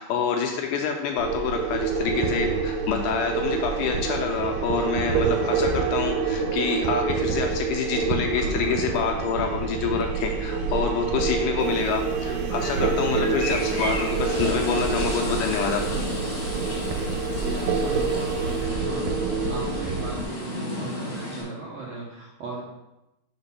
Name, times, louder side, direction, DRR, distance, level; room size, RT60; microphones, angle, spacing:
voice 1, 0.0-16.1, left 6 dB, 80° left, 2 dB, 2.0 m, -27 dB
sound 1, 1.2-20.2, right 5 dB, 85° right, 2.4 m, -27 dB
voice 2, 8.3-8.8 12.0-13.5 17.3-19.0 19.5-22.6, right 3 dB, 70° right, -5 dB, 1.5 m, -37 dB
sound 2, 11.6-18.6, equal, 60° left, 0.6 m, -40 dB
sound 3, 13.4-21.4, left 1 dB, 30° left, 1.1 m, -33 dB
5.1 x 4.0 x 5.5 m, 0.94 s
omnidirectional pair, 4.0 m